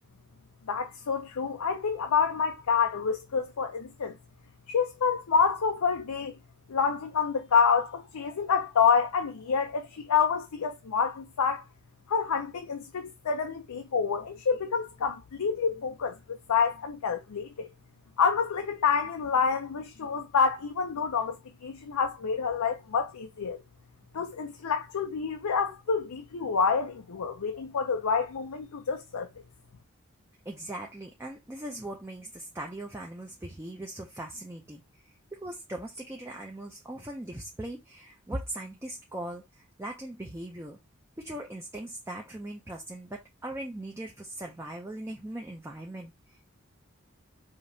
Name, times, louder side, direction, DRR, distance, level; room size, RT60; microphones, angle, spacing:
voice 1, 0.7-4.2 4.7-6.3 6.7-11.6 12.1-17.7 18.2-21.4 21.6-23.6 24.1-29.3, left 6 dB, 90° left, 0.5 m, -28 dB
voice 2, 30.5-40.8 41.2-46.4, right 1 dB, 10° right, 0.4 m, -40 dB
5.0 x 2.9 x 2.7 m
head